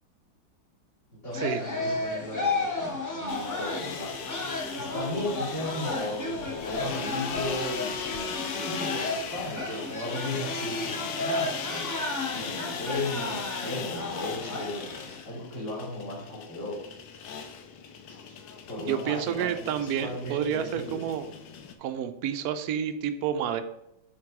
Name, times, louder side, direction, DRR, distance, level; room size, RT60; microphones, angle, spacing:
voice 1, 1.2-4.1 4.8-11.9 12.3-14.9 15.2-16.8 18.1-18.2 18.7-21.1, left 1 dB, 35° left, -5 dB, 3.0 m, -36 dB
sound 1, 1.3-15.2, left 2 dB, 15° left, 0.7 m, -34 dB
sound 2, 3.3-21.7, left 6 dB, 70° left, 1.4 m, -38 dB
voice 2, 18.8-21.3 21.8-23.6, right 9 dB, 75° right, 9 dB, 0.9 m, -29 dB
7.5 x 3.9 x 4.8 m, 0.82 s
omnidirectional pair, 2.2 m